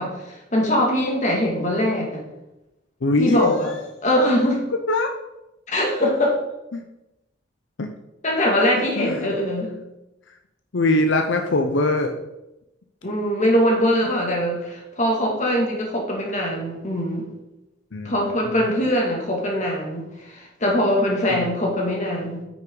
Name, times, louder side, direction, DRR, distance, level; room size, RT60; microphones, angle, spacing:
voice 1, 0.0-2.2 3.2-3.7 4.0-4.6 5.7-6.4 8.2-9.7 13.0-17.3 18.0-22.4, equal, 40° left, -1 dB, 2.4 m, -22 dB
voice 2, 3.0-3.8 4.9-5.1 6.7-6.8 7.8-7.9 9.0-9.3 10.7-12.1 17.9-18.7 21.3-21.4, left 2 dB, 85° left, 4 dB, 0.7 m, -22 dB
9.1 x 6.3 x 3.9 m, 0.94 s
head